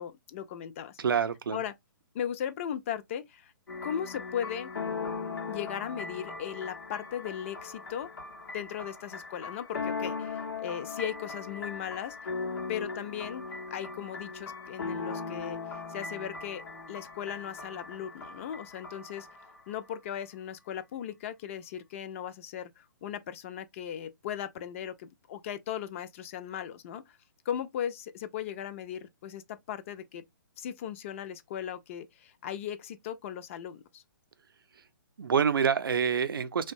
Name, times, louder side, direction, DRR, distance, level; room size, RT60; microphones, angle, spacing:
voice 1, 0.0-1.0 1.5-1.7 2.1-3.5 3.8-4.7 5.5-8.1 8.5-12.2 12.7-13.4 13.7-15.6 15.9-16.6 16.9-19.3 19.7-27.2 27.5-30.2 30.6-34.0, left 9 dB, 35° left, 0.4 m, -37 dB
voice 2, 1.0-1.6 35.2-36.7, right 7 dB, 85° right, 0.4 m, -27 dB
sound 1, 3.7-19.8, left 4 dB, 85° left, 0.8 m, -39 dB
2.9 x 2.2 x 2.5 m
hypercardioid pair, 140°, 11 cm